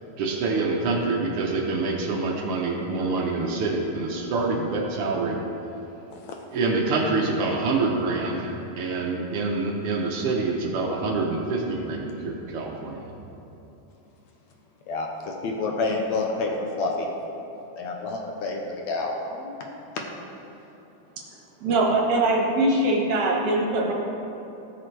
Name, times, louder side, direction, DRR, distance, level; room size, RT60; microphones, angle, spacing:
voice 1, 0.2-5.4 6.5-13.0, right 3 dB, 90° right, -1 dB, 1.2 m, -26 dB
voice 2, 14.9-17.1 17.8-18.6 18.9-19.8, left 3 dB, 75° left, 1 dB, 1.8 m, -28 dB
voice 3, 21.6-23.9, right 2 dB, 65° right, -2 dB, 2.2 m, -22 dB
18.0 x 6.2 x 3.3 m, 3.0 s
omnidirectional pair, 3.7 m